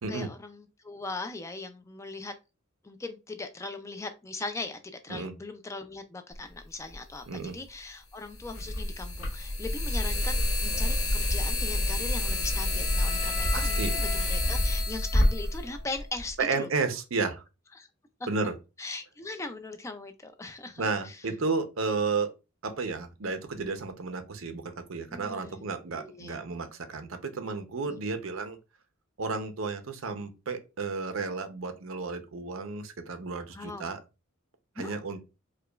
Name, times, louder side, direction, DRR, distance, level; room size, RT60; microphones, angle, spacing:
voice 1, 0.1-2.3 2.8-16.7 17.8-17.9 18.8-21.1 25.1-25.6 26.0-26.4 27.9-28.0 33.5-33.8 34.8-35.0, left 3 dB, 15° left, 0.3 m, -39 dB
sound 1, 6.9-7.0 8.4-16.3, left 1 dB, 80° left, 1.8 m, -27 dB
Wind instrument woodwind instrument, 12.1-16.2, left 4 dB, 40° left, 1.3 m, -43 dB
voice 2, 13.5-14.0 16.4-17.4 18.3-18.5 20.8-22.3 22.6-28.6 29.2-34.0 34.8-35.2, right 4 dB, 70° right, 0.6 m, -32 dB
4.8 x 2.3 x 2.3 m
head